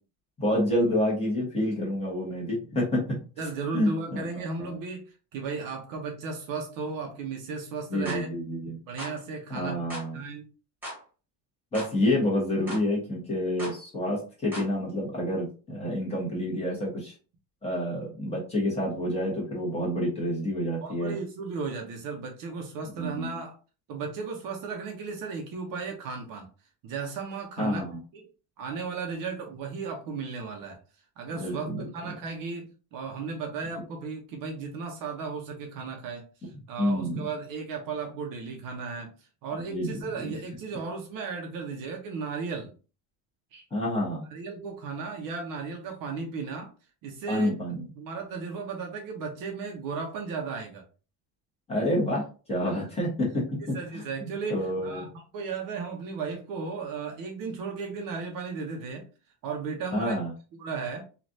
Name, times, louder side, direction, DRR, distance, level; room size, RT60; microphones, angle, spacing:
voice 1, 0.4-3.2 3.7-4.3 4.6-4.8 7.9-8.8 9.5-10.2 11.7-17.1 17.6-21.2 22.9-23.3 27.6-28.0 31.3-32.1 36.8-37.2 39.7-40.3 43.7-44.2 47.3-47.8 51.7-55.0 59.9-60.3, left 1 dB, 15° left, -5 dB, 1.1 m, -28 dB
voice 2, 3.4-8.3 8.9-10.4 20.8-23.5 23.9-26.5 26.8-27.8 28.1-28.3 28.6-30.8 31.2-42.7 43.5-43.6 44.3-46.7 47.0-47.5 47.9-50.8 53.7-59.0 59.4-60.1 60.5-61.0, right 5 dB, 50° right, 2 dB, 0.7 m, -35 dB
sound 1, 8.0-8.2 9.0-9.2 9.9-10.1 10.8-11.0 11.7-11.9 12.7-12.8 13.6-13.8 14.5-14.7, equal, 5° right, 1.4 m, -38 dB
3.1 x 2.4 x 2.6 m, 0.35 s
cardioid pair, 165°, 42 cm